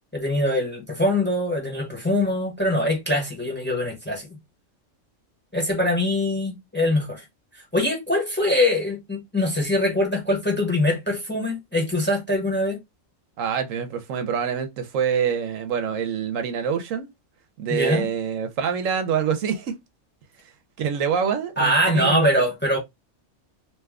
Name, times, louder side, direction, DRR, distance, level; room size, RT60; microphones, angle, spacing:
voice 1, 0.1-4.3 5.5-7.2 7.7-12.8 17.7-18.1 21.6-22.8, left 1 dB, 10° left, 0.8 m, -23 dB
voice 2, 13.4-17.1 17.6-19.8 20.8-22.4, right 7 dB, 85° right, 1.1 m, -26 dB
2.9 x 2.2 x 3.5 m
omnidirectional pair, 1.3 m